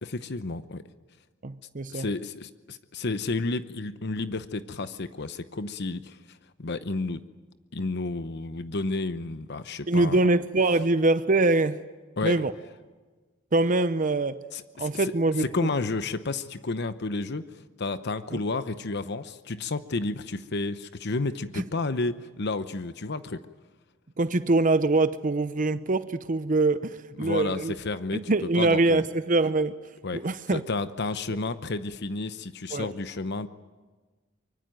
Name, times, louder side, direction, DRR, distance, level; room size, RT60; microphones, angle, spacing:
voice 1, 0.0-0.8 1.9-7.2 7.7-10.2 12.2-12.4 14.5-15.1 15.4-23.4 27.2-29.0 30.0-30.2 30.5-33.5, left 3 dB, 60° left, 0.9 m, -31 dB
voice 2, 1.4-2.1 9.9-11.8 12.2-12.5 13.5-14.4 14.8-15.7 18.3-18.4 21.5-21.6 24.2-27.7 28.1-29.8 30.1-30.6 32.7-32.9, right 2 dB, 40° right, 0.8 m, -24 dB
24.5 x 24.0 x 9.1 m
head